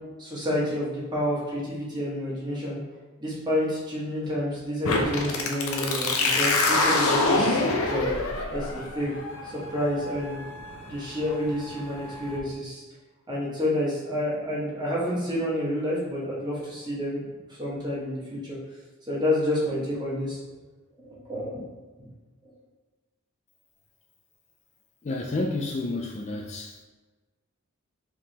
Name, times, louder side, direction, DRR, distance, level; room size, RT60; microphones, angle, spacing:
voice 1, 0.2-2.8 3.2-9.2 9.4-10.4 10.9-12.8 13.3-17.2 17.5-18.6 19.1-20.4 21.0-21.6 22.0-22.1 22.4-22.5, left 1 dB, 20° right, -7 dB, 1.4 m, -29 dB
sound 1, 4.8-12.4, left 2 dB, 70° left, 0.7 m, -27 dB
voice 2, 25.0-26.8, left 2 dB, 30° left, 1 dB, 0.3 m, -30 dB
4.8 x 3.6 x 2.9 m, 1.3 s
head